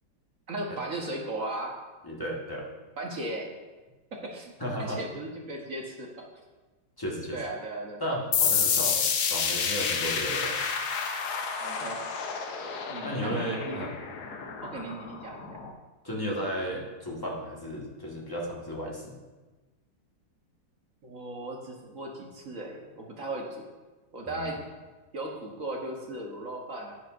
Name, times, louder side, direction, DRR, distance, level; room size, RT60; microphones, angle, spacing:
voice 1, 0.5-1.8 3.0-3.5 4.1-4.5 4.8-6.1 7.3-8.0 11.6-12.0 12.9-13.8 14.6-15.6 16.2-16.5 21.0-23.6 24.1-24.6 25.1-26.9, right 2 dB, 45° right, 0 dB, 1.2 m, -37 dB
voice 2, 2.0-2.7 4.6-5.0 7.0-7.4 8.0-9.0 9.3-10.5 13.0-13.9 16.0-19.1 24.2-24.6, equal, 15° left, -3 dB, 1.1 m, -34 dB
sound 1, 8.3-15.7, left 6 dB, 60° left, 1.1 m, -29 dB
10.5 x 10.0 x 2.5 m, 1.2 s
omnidirectional pair, 2.3 m